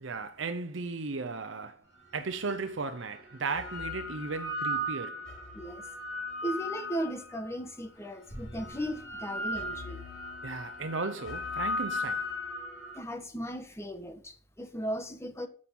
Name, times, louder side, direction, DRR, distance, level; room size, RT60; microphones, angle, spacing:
voice 1, 0.0-1.8 2.1-5.2 10.4-12.2, right 4 dB, 80° right, 0.8 m, -35 dB
sound 1, 2.2-2.3 3.3-7.5 8.3-13.0, left 1 dB, 85° left, 4.5 m, -36 dB
voice 2, 5.5-5.9 6.4-10.0 12.9-15.5, right 1 dB, 15° left, 1.3 m, -37 dB
10.5 x 7.6 x 5.4 m
head